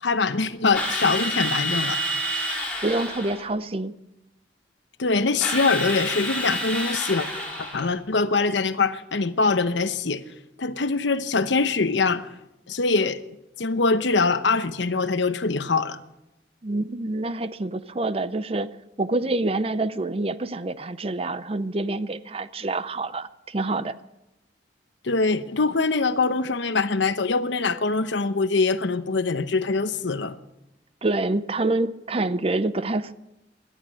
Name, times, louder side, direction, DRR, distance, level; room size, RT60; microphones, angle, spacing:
voice 1, 0.0-2.0 5.0-7.3 7.6-10.2 10.6-12.3 12.7-13.2 13.6-16.0 25.0-30.4, left 4 dB, 80° left, 0.9 m, -23 dB
Drill, 0.7-3.4 5.4-7.9, equal, 5° left, 5.2 m, -28 dB
voice 2, 2.8-3.9 16.6-18.7 19.0-23.9 31.0-33.1, right 2 dB, 30° right, 0.6 m, -26 dB
18.0 x 12.0 x 6.3 m
head